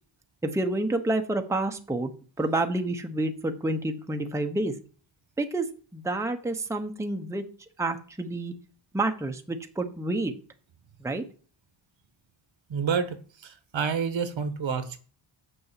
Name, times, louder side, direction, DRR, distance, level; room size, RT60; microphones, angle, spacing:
voice 1, 0.4-2.1 2.4-4.7 5.4-5.7 5.9-7.4 7.8-8.5 8.9-10.3 11.0-11.2, right 2 dB, 5° right, 0.7 m, -28 dB
voice 2, 12.7-15.0, right 6 dB, 65° right, 1.2 m, -29 dB
6.7 x 6.1 x 7.3 m
wide cardioid pair, 160°, 49 cm